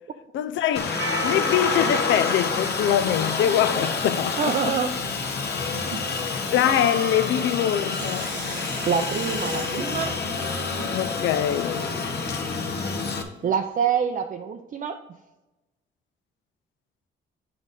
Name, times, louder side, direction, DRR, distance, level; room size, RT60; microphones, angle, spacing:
voice 1, 0.3-4.8 6.2-8.3 10.9-11.8, left 10 dB, 75° left, 0.5 m, -24 dB
Aircraft, 0.7-13.2, left 4 dB, 55° left, 0.9 m, -28 dB
Percussion, 1.0-5.9, equal, 90° right, 1.4 m, -36 dB
voice 2, 4.4-4.9 5.9-6.1 8.8-10.1 13.4-15.0, right 7 dB, 45° right, 0.5 m, -26 dB
Dishes pots and pans, 7.3-12.5 13.0-13.1, right 6 dB, 65° right, 0.9 m, -41 dB
9.1 x 3.9 x 3.7 m
cardioid pair, 90°, 20 cm